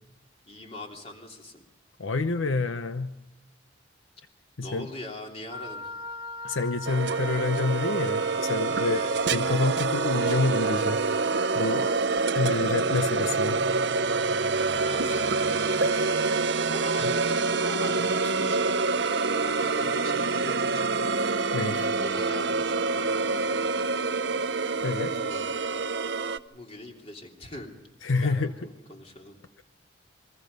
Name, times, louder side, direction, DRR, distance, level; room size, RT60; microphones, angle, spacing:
voice 1, 0.5-1.6 4.6-5.9 8.8-9.3 14.8-15.3 16.7-21.0 21.7-23.7 25.2-25.5 26.5-27.8 28.2-29.4, left 1 dB, 30° left, 1 dB, 3.0 m, -41 dB
voice 2, 2.0-3.1 4.6-4.9 6.4-9.0 9.3-11.9 12.3-13.6 17.0-17.1 21.5-21.9 24.8-25.1 28.0-28.5, left 3 dB, 80° left, 10 dB, 0.8 m, -28 dB
Wind instrument woodwind instrument, 5.5-12.0, equal, 25° right, 1.4 m, -40 dB
sound 1, 6.9-26.4, right 4 dB, 60° right, 0.7 m, -26 dB
29.0 x 23.0 x 5.3 m, 0.93 s
head